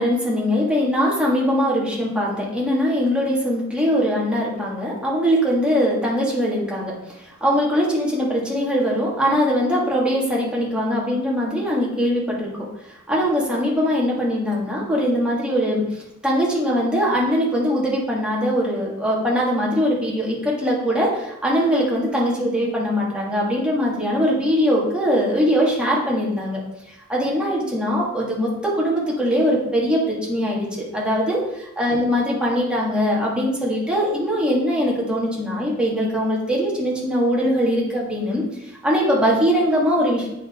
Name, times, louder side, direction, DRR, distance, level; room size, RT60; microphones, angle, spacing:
voice 1, 0.0-6.9 7.3-12.7 13.1-26.6 27.1-30.7 30.9-31.4 31.8-38.4 38.8-40.3, equal, 5° right, -5 dB, 1.9 m, -21 dB
9.2 x 4.2 x 3.7 m, 0.86 s
head